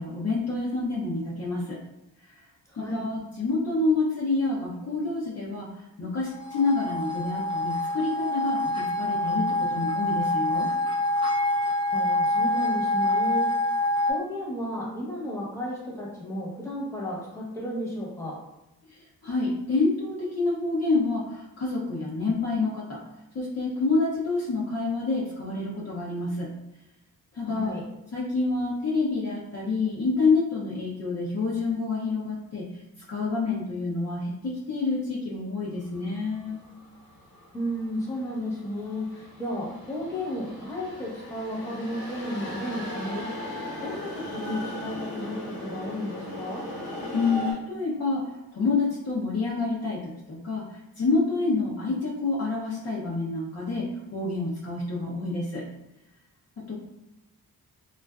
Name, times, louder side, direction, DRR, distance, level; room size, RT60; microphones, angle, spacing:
voice 1, 0.0-1.8 2.3-2.4 2.8-5.7 6.0-10.7 18.9-23.0 23.3-26.5 27.3-27.7 28.1-32.7 33.1-36.6 47.1-55.7 56.6-56.7, left 3 dB, 40° left, -6 dB, 0.6 m, -28 dB
voice 2, 2.7-3.1 11.6-13.5 14.1-18.3 27.4-27.8 37.5-46.6, equal, 5° left, -5 dB, 0.9 m, -33 dB
sound 1, 6.3-14.1, left 1 dB, 15° right, 0.4 m, -26 dB
sound 2, 35.9-47.5, left 1 dB, 60° left, 1.0 m, -38 dB
2.4 x 2.3 x 2.2 m, 0.94 s
cardioid pair, 75°, 38 cm